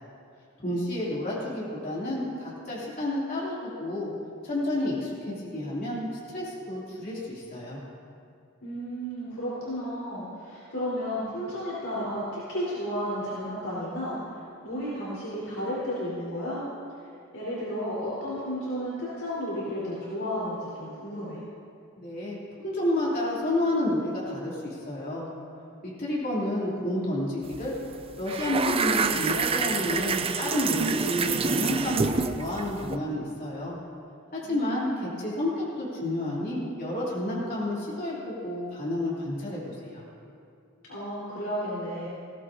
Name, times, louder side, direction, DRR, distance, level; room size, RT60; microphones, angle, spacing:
voice 1, 0.6-4.1 4.4-7.8 22.0-22.4 22.6-25.3 25.8-27.8 28.2-33.8 34.3-40.0, left 1 dB, 40° left, -7 dB, 3.2 m, -30 dB
voice 2, 8.6-14.2 14.6-16.6 17.3-21.4 34.4-35.1 40.9-42.1, equal, 75° left, -9 dB, 4.2 m, -33 dB
sound 1, 27.5-27.7 27.9-33.0, right 5 dB, 25° right, 0.5 m, -27 dB
20.0 x 16.5 x 2.8 m, 2.5 s
head